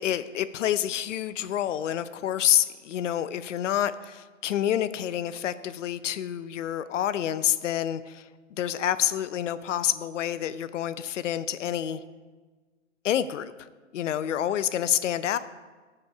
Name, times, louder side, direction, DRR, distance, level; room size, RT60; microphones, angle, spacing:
voice 1, 0.0-12.0 13.0-15.4, left 11 dB, 70° left, 14 dB, 0.7 m, -28 dB
17.0 x 5.9 x 4.5 m, 1.4 s
hypercardioid pair, 140°, 38 cm